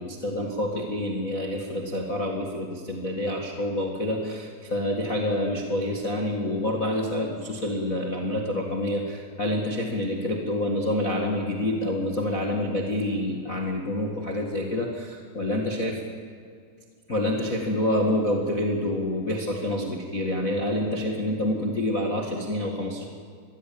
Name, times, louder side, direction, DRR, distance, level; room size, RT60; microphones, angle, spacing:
voice 1, 0.0-16.0 17.1-23.0, left 1 dB, 50° left, 0 dB, 0.9 m, -27 dB
21.5 x 15.0 x 8.6 m, 2.2 s
omnidirectional pair, 4.8 m